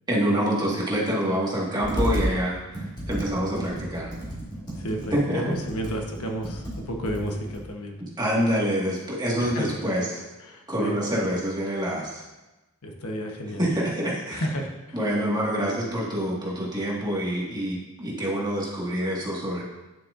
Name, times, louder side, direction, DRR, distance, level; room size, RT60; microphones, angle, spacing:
voice 1, 0.1-4.1 5.1-5.6 8.2-10.3 10.7-12.2 13.6-14.5 14.9-19.6, equal, 20° right, -5 dB, 1.7 m, -26 dB
Computer keyboard, 1.8-2.3 2.7-7.7, equal, 20° left, 2.1 m, -32 dB
voice 2, 4.7-8.0 9.4-9.7 10.4-11.0 12.8-13.6 14.3-15.0 15.6-15.8, equal, 85° left, 2 dB, 1.1 m, -32 dB
9.4 x 7.2 x 2.5 m, 1.0 s
head